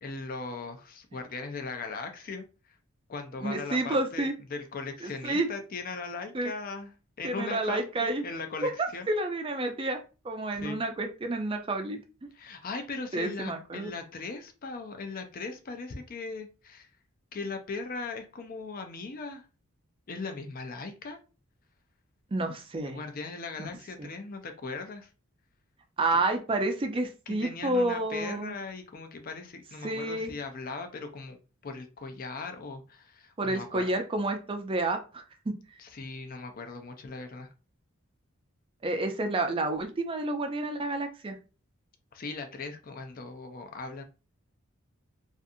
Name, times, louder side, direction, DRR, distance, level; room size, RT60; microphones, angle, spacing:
voice 1, 0.0-2.8 3.1-9.1 10.5-10.8 12.3-16.9 17.3-19.5 20.1-21.2 22.9-25.1 26.1-26.2 27.3-33.9 35.8-37.5 42.1-44.0, left 4 dB, 40° left, 6 dB, 0.4 m, -39 dB
voice 2, 3.4-4.3 5.0-5.5 6.3-6.5 7.2-8.2 8.6-8.7 9.1-10.0 10.2-12.0 13.1-13.9 22.3-23.0 24.0-24.1 26.0-28.5 29.8-30.3 33.4-35.5 38.8-41.4, right 2 dB, 25° right, 5 dB, 0.4 m, -30 dB
2.5 x 2.5 x 2.6 m, 0.33 s
head